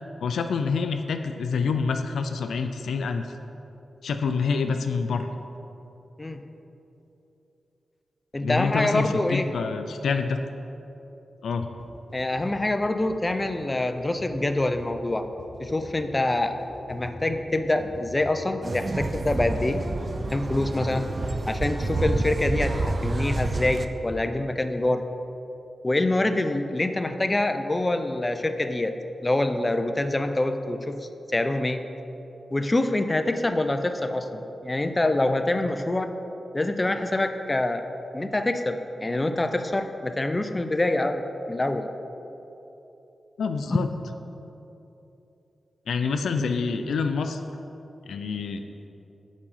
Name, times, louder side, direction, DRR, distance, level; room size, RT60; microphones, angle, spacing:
voice 1, 0.2-3.3 4.0-5.3 8.4-10.4 11.4-11.7 43.4-43.9 45.9-47.4 48.1-48.6, left 5 dB, 85° left, 7 dB, 0.3 m, -27 dB
voice 2, 8.3-9.5 12.1-15.3 15.6-16.6 16.9-19.8 20.3-21.1 21.5-25.0 25.8-28.9 29.2-31.0 31.3-31.8 32.5-36.1 36.5-37.8 38.1-41.9, left 2 dB, 25° left, 8 dB, 0.5 m, -25 dB
sound 1, 11.8-24.3, left 1 dB, 60° left, 1.0 m, -44 dB
sound 2, 18.6-23.9, right 2 dB, 45° right, 0.4 m, -28 dB
7.3 x 4.9 x 5.5 m, 3.0 s
cardioid pair, 55°, 0 cm